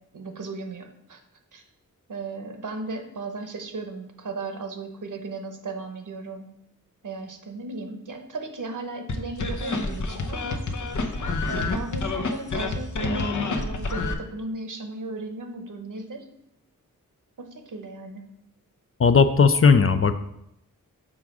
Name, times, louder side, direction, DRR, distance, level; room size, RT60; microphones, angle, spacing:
voice 1, 0.1-1.2 1.5-1.6 2.1-6.5 7.0-10.6 11.5-16.3 17.5-18.2, right 3 dB, 65° right, 5 dB, 1.0 m, -36 dB
sound 1, 9.1-14.1, left 3 dB, 65° left, 0.8 m, -28 dB
voice 2, 19.0-20.2, left 5 dB, 45° left, 10 dB, 0.5 m, -17 dB
6.5 x 3.6 x 6.0 m, 0.79 s
wide cardioid pair, 85°, 33 cm